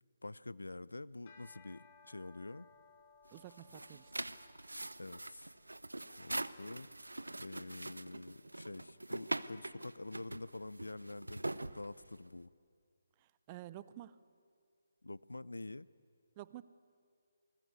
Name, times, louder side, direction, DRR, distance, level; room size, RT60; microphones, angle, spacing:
voice 1, 0.2-2.7 5.0-5.5 6.2-6.9 7.4-11.5 11.7-12.5 15.0-15.9, left 2 dB, 80° left, 20 dB, 0.6 m, -47 dB
sound 1, 1.1-10.4, left 4 dB, 35° left, 4.2 m, -66 dB
voice 2, 3.3-4.1 13.2-14.2 16.4-16.6, right 14 dB, 25° right, 16 dB, 0.7 m, -50 dB
sound 2, 3.3-12.4, right 2 dB, 90° right, 0.8 m, -43 dB
27.5 x 20.0 x 8.3 m, 2.2 s
figure-of-eight pair, 150°, 0 cm